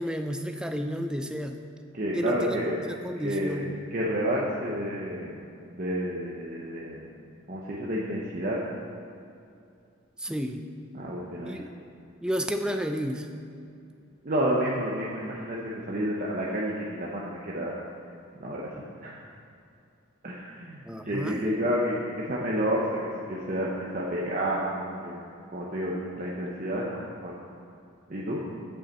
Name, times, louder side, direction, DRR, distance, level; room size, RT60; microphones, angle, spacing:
voice 1, 0.0-1.6 2.1-3.7 10.2-10.6 11.4-11.7 12.2-13.3 20.9-21.5, equal, 5° right, 6 dB, 0.4 m, -31 dB
voice 2, 1.9-2.8 3.2-5.4 5.7-7.1 7.5-8.6 10.9-11.6 14.2-17.7 18.4-18.6 19.0-19.2 20.2-27.3 28.1-28.4, equal, 40° right, -4 dB, 0.8 m, -30 dB
7.2 x 5.5 x 7.5 m, 2.5 s
head